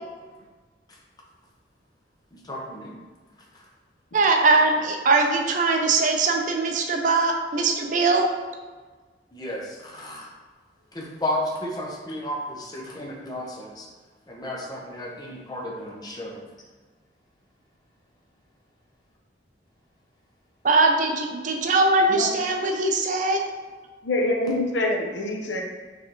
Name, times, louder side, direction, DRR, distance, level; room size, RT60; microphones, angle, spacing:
voice 1, 2.3-3.0 9.3-10.3 10.9-13.9 14.3-16.4, left 1 dB, 20° left, -2 dB, 0.7 m, -33 dB
voice 2, 4.1-8.3 20.6-23.4, right 3 dB, 45° right, 3 dB, 0.5 m, -21 dB
voice 3, 24.0-25.6, left 1 dB, 85° left, 0 dB, 0.7 m, -25 dB
4.7 x 3.3 x 2.9 m, 1.4 s
head